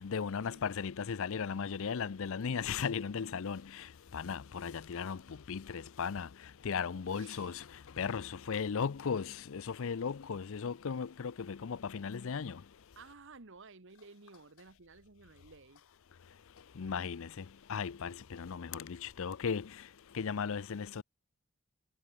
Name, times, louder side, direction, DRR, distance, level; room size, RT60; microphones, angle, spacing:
voice 1, 0.0-3.8 4.1-5.2 5.5-6.3 6.6-7.6 8.0-12.6 16.8-17.4 17.7-19.7 20.1-21.0, left 6 dB, 65° left, 0.5 m, -36 dB
voice 2, 7.1-7.6 12.9-15.8, right 4 dB, 60° right, 1.5 m, -55 dB
head